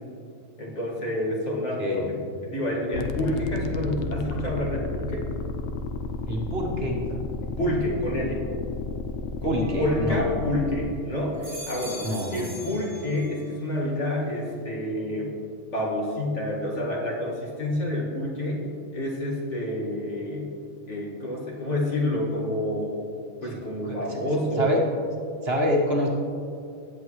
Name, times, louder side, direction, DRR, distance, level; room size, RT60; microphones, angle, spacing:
voice 1, 0.6-2.2 2.4-5.2 7.1-7.2 7.6-8.5 9.4-15.3 15.7-18.7 18.9-20.5 20.9-23.0 23.4-24.7, left 1 dB, 60° left, -4 dB, 2.2 m, -28 dB
sound 1, 2.9-10.9, left 3 dB, 80° left, 1.1 m, -32 dB
voice 2, 6.3-7.0 9.4-10.3 12.0-12.5 23.5-23.6 23.8-24.2 24.6-24.8 25.4-26.1, equal, 50° right, -1 dB, 1.6 m, -26 dB
sound 2, 9.6-10.8 11.2-13.6 14.0-14.6, equal, 25° right, 1.8 m, -43 dB
18.0 x 7.9 x 3.1 m, 2.5 s
omnidirectional pair, 1.4 m